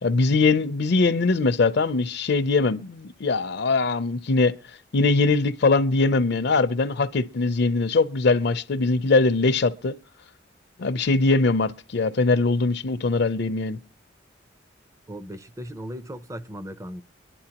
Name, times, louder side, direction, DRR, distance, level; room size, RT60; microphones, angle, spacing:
voice 1, 0.0-4.6 4.9-9.9 10.8-13.8, left 3 dB, 60° left, 0.5 m, -21 dB
voice 2, 15.1-17.0, equal, 15° right, 0.5 m, -37 dB
23.0 x 10.5 x 2.9 m
head